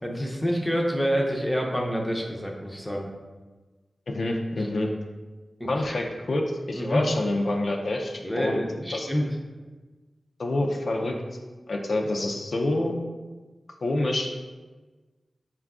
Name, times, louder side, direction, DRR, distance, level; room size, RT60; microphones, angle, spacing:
voice 1, 0.0-3.1 5.6-6.0 6.7-7.0 8.2-9.3, equal, 5° left, 0 dB, 0.5 m, -27 dB
voice 2, 4.1-4.9 5.7-8.6 8.9-9.1 10.4-11.2 11.7-13.0 13.8-14.3, left 2 dB, 65° left, 1 dB, 0.4 m, -27 dB
4.7 x 2.3 x 3.6 m, 1.3 s
wide cardioid pair, 110°, 0 cm